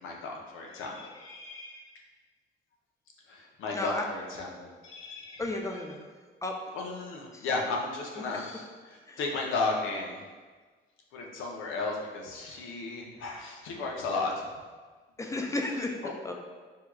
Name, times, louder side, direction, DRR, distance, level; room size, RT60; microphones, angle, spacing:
voice 1, 0.0-2.0 3.3-5.4 6.7-10.2 11.1-14.5 16.0-16.1, left 3 dB, 85° left, -1 dB, 0.6 m, -34 dB
voice 2, 3.7-4.0 5.4-6.1 6.4-6.5 7.3-7.5 9.1-9.2 15.2-16.3, left 2 dB, 15° left, 2 dB, 0.4 m, -33 dB
4.5 x 2.3 x 2.2 m, 1.4 s
cardioid pair, 90°, 20 cm